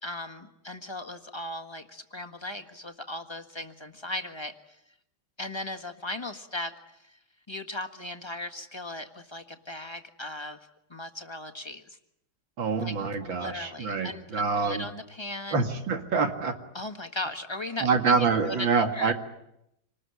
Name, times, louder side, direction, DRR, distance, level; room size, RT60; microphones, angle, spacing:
voice 1, 0.0-4.8 5.4-7.2 7.5-10.6 10.9-12.0 12.8-15.6 16.7-18.7 18.9-19.1, left 1 dB, 15° left, 5 dB, 1.4 m, -37 dB
voice 2, 12.6-14.9 15.5-16.6 17.8-19.1, right 5 dB, 80° right, 6 dB, 2.8 m, -26 dB
27.0 x 19.5 x 9.5 m, 0.82 s
omnidirectional pair, 2.1 m